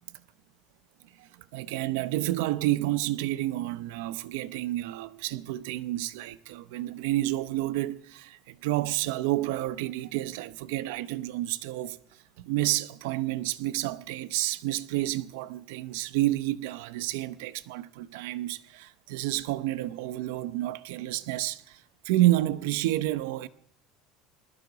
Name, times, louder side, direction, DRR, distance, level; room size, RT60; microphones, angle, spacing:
voice 1, 1.2-12.0 12.4-23.5, right 16 dB, 85° right, 0.8 m, -30 dB
21.0 x 12.5 x 4.0 m
cardioid pair, 155°, 0 cm